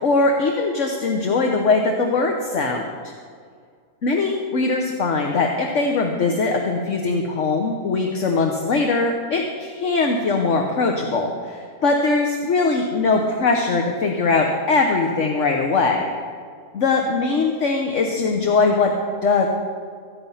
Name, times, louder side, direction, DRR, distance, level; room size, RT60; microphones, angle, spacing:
voice 1, 0.0-3.1 4.0-16.1 16.7-18.9 19.2-19.5, left 3 dB, 65° left, 2 dB, 1.4 m, -21 dB
24.5 x 9.1 x 5.7 m, 2.1 s
omnidirectional pair, 1.4 m